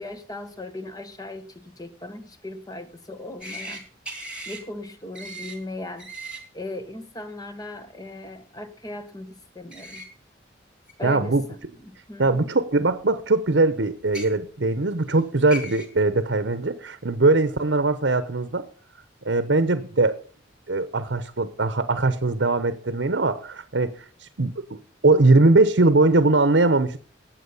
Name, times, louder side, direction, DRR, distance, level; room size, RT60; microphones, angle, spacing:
voice 1, 0.0-3.8 4.5-6.1 6.5-10.1 11.0-12.5, left 2 dB, 20° left, 10 dB, 1.4 m, -38 dB
sound 1, 3.4-3.8 4.1-4.6 5.1-5.6 6.0-6.4 9.7-10.1 10.9-11.0 12.2-12.3 14.0-14.3 15.1-15.2 15.5-15.9, equal, 5° right, 2.6 m, -36 dB
voice 2, 11.0-11.4 12.2-18.6 19.2-20.2 20.7-24.8 25.0-27.0, right 2 dB, 70° right, 12 dB, 0.9 m, -21 dB
18.0 x 7.5 x 5.5 m, 0.43 s
head